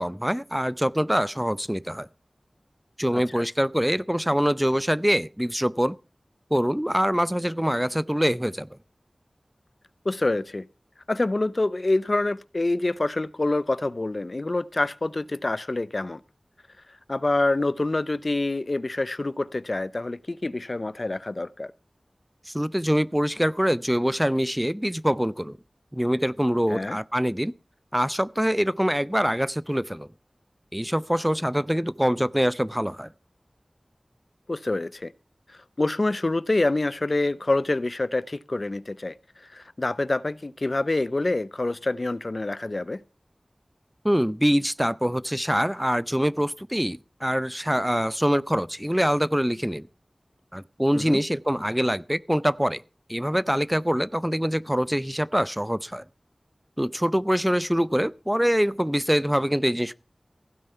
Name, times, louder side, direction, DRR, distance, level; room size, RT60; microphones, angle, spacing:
voice 1, 0.0-2.1 3.0-6.0 6.5-8.7 22.5-25.6 25.9-27.5 27.9-30.1 30.7-33.1 44.0-49.9 50.5-52.8 53.1-56.0 56.8-59.9, equal, 5° right, 0.6 m, -24 dB
voice 2, 3.1-3.4 10.0-10.7 11.1-16.2 17.1-21.7 26.7-27.0 34.5-35.1 35.8-39.2 39.5-43.0 50.9-51.2, left 2 dB, 55° left, 0.6 m, -26 dB
16.0 x 9.4 x 5.5 m
wide cardioid pair, 55°, 0 cm